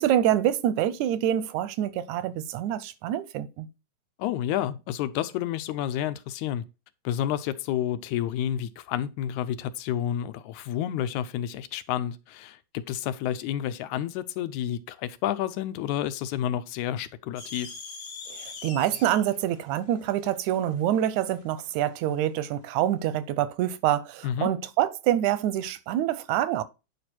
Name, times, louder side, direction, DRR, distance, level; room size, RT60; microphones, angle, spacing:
voice 1, 0.0-3.7 18.3-26.6, right 11 dB, 90° right, 2.0 m, -26 dB
voice 2, 4.2-6.6 7.0-17.7 24.2-24.5, left 11 dB, 90° left, 2.1 m, -30 dB
sound 1, 17.4-21.9, left 4 dB, 45° left, 1.7 m, -43 dB
9.3 x 5.1 x 4.5 m
omnidirectional pair, 3.4 m